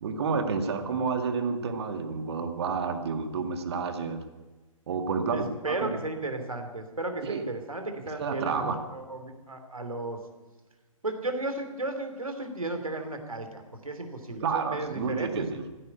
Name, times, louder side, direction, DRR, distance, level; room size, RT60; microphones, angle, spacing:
voice 1, 0.0-4.2 4.9-6.0 7.2-7.4 8.2-8.8 14.4-15.6, right 5 dB, 50° right, 7 dB, 1.9 m, -30 dB
voice 2, 5.3-10.2 11.0-15.4, right 2 dB, 80° right, 6 dB, 3.0 m, -34 dB
15.5 x 10.0 x 9.3 m, 1.2 s
figure-of-eight pair, 125°, 18 cm